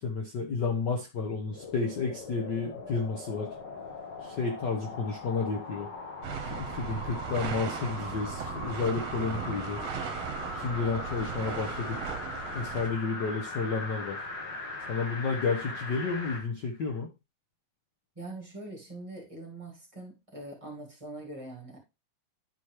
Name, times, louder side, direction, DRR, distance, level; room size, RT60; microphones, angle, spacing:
voice 1, 0.0-3.5 4.2-5.9 6.5-9.8 10.5-12.0 12.5-14.2 14.9-17.1, left 4 dB, 75° left, 1.0 m, -31 dB
sound 1, 1.5-16.5 16.9-17.0, left 2 dB, 45° left, 1.7 m, -40 dB
sound 2, 6.2-12.9, right 8 dB, 65° right, 1.9 m, -37 dB
voice 2, 18.2-21.8, right 2 dB, 10° right, 1.8 m, -43 dB
11.5 x 4.4 x 3.2 m
omnidirectional pair, 3.4 m